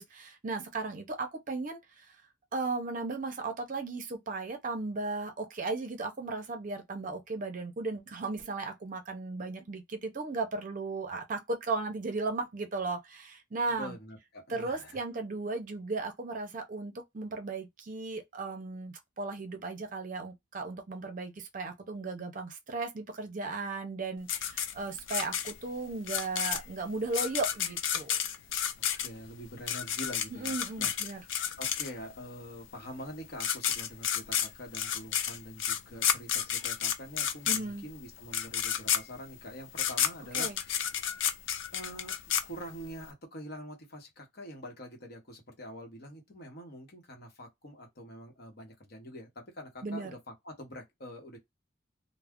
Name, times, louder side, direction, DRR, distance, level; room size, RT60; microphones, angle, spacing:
voice 1, 0.0-2.1 2.5-13.9 14.5-28.2 30.3-31.2 37.5-37.8 40.3-40.6 49.8-50.1, right 3 dB, 40° right, 0.5 m, -36 dB
voice 2, 13.7-15.0 29.0-30.9 31.6-40.7 41.1-41.3 41.7-42.2 42.4-51.4, equal, 50° left, 0.9 m, -45 dB
sound 1, 24.3-32.2 33.1-33.2 33.4-43.0, left 9 dB, 70° left, 0.4 m, -31 dB
2.3 x 2.0 x 3.4 m
head